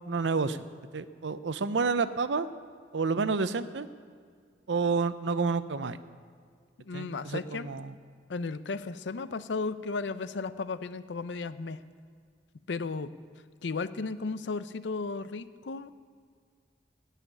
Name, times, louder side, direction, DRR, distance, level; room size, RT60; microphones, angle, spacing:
voice 1, 0.1-0.6 0.9-2.5 2.9-3.9 4.7-6.0 6.9-7.9, right 4 dB, 85° right, 13 dB, 0.6 m, -29 dB
voice 2, 6.8-7.7 8.3-11.8 12.7-13.1 13.6-15.9, left 4 dB, 85° left, 14 dB, 0.5 m, -34 dB
17.0 x 5.8 x 9.7 m, 2.1 s
head